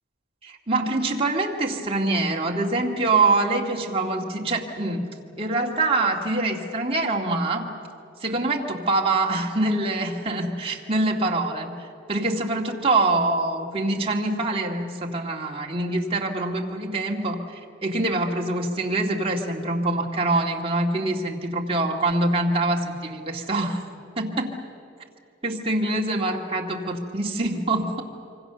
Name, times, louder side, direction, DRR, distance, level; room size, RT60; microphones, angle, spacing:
voice 1, 0.4-5.1 5.4-7.7 8.2-11.7 12.1-23.8 24.2-24.6 25.4-28.0, right 2 dB, 30° right, 0 dB, 2.2 m, -25 dB
26.5 x 24.5 x 6.9 m, 2.5 s
head